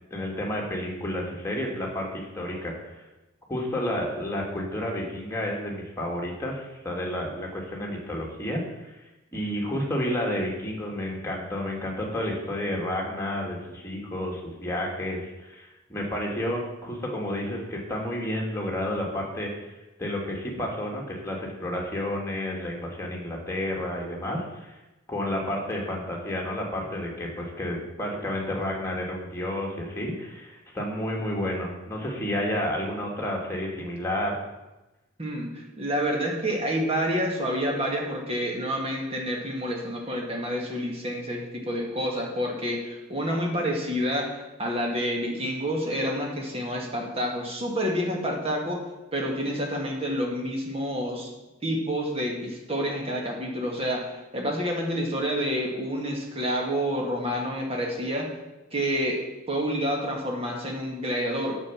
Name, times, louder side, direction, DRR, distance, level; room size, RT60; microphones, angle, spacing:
voice 1, 0.1-3.0 3.5-8.9 9.3-19.7 20.0-24.8 25.1-34.4, left 1 dB, 15° left, -2 dB, 2.3 m, -31 dB
voice 2, 35.2-48.8 49.1-51.3 51.6-58.3 58.7-59.2 59.5-61.6, equal, 30° right, 0 dB, 2.2 m, -28 dB
9.4 x 7.1 x 7.2 m, 1.0 s
head